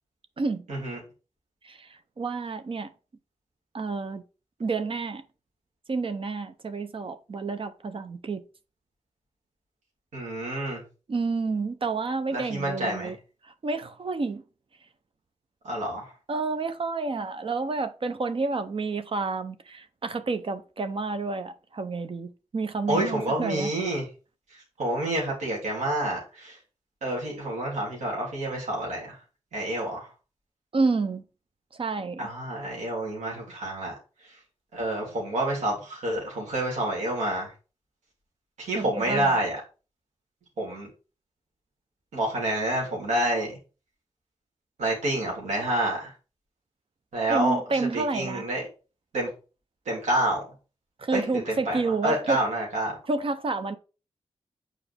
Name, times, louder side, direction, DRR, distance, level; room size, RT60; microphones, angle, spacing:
voice 1, 0.7-1.0 10.1-10.8 12.3-13.1 15.6-16.1 22.9-24.0 24.8-26.6 27.0-29.2 29.5-30.1 32.2-33.9 34.7-37.5 38.6-39.6 40.6-40.9 42.1-43.6 44.8-46.1 47.1-47.6 47.9-48.6 49.1-49.3 49.9-50.4 51.1-53.0, right 1 dB, 90° right, 3.0 m, -28 dB
voice 2, 1.6-2.9 3.7-4.2 4.6-5.2 5.9-8.4 11.1-13.2 13.4-14.4 16.3-23.7 30.7-31.2 31.7-32.3 38.7-39.3 47.3-48.5 51.0-52.4 53.1-53.8, right 3 dB, 50° right, 0.8 m, -29 dB
6.9 x 4.8 x 3.5 m
cardioid pair, 50°, 12 cm